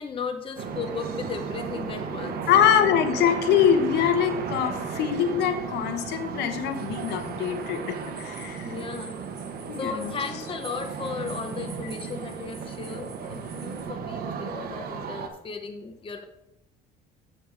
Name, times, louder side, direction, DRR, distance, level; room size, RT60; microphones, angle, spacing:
voice 1, 0.0-2.8 8.6-9.2 9.8-16.2, left 5 dB, 30° left, 5 dB, 0.9 m, -35 dB
sound 1, 0.6-15.3, right 6 dB, 65° right, 1.0 m, -35 dB
voice 2, 2.5-8.7 9.7-10.1, left 9 dB, 80° left, 9 dB, 1.0 m, -24 dB
sound 2, 6.7-13.8, right 3 dB, 35° right, 2.5 m, -49 dB
7.3 x 6.9 x 4.7 m, 0.86 s
cardioid pair, 110°, 17 cm